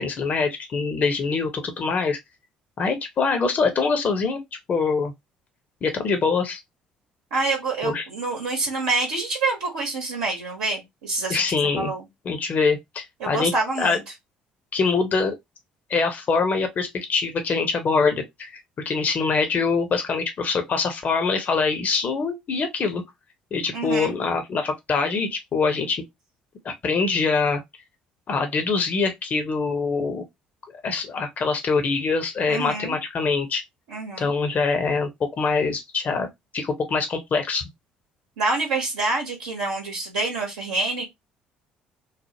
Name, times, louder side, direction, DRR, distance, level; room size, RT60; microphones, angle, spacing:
voice 1, 0.0-2.2 2.8-4.4 4.7-5.1 5.8-6.6 7.8-8.0 11.3-11.9 12.2-13.5 13.8-14.0 14.7-15.4 15.9-23.0 23.5-26.0 26.6-27.6 28.3-30.2 30.8-33.6 34.2-35.1 35.4-37.6, left 4 dB, 40° left, 0.7 m, -24 dB
voice 2, 7.3-11.4 11.8-12.0 13.2-14.0 23.7-24.2 32.5-33.0 33.9-34.3 38.4-41.1, right 3 dB, 70° right, 0.9 m, -26 dB
3.2 x 2.0 x 2.8 m
figure-of-eight pair, 50°, 4 cm